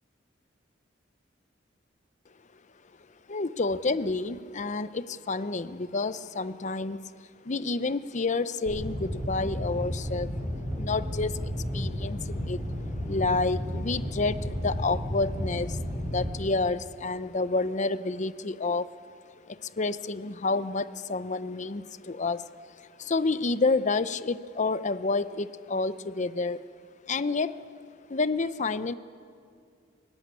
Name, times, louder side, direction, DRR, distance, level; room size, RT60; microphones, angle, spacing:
voice 1, 3.3-7.1 7.4-10.3 10.8-11.4 11.7-12.6 13.1-18.9 19.5-22.4 23.0-26.6 27.1-27.6 28.1-28.9, left 3 dB, 40° left, 14 dB, 0.7 m, -29 dB
sound 1, 8.7-16.3, equal, 15° right, 7.0 m, -32 dB
22.5 x 18.0 x 9.6 m, 2.3 s
head